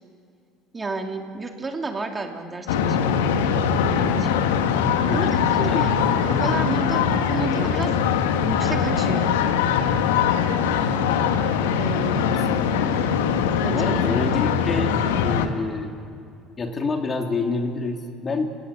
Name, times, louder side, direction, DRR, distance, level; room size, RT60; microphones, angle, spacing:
voice 1, 0.7-3.5 3.9-4.4 5.1-6.0 6.3-8.0 8.4-9.3 11.8-12.4 13.6-14.0, right 3 dB, 25° right, 4 dB, 3.0 m, -31 dB
sound 1, 2.7-15.5, left 7 dB, 80° left, 1.5 m, -22 dB
voice 2, 5.1-5.4 5.7-5.9 12.2-12.6 13.7-14.9 15.2-15.9 16.6-18.5, left 3 dB, 35° left, 4 dB, 3.0 m, -27 dB
29.0 x 17.5 x 8.3 m, 2.4 s
hypercardioid pair, 70°, 0 cm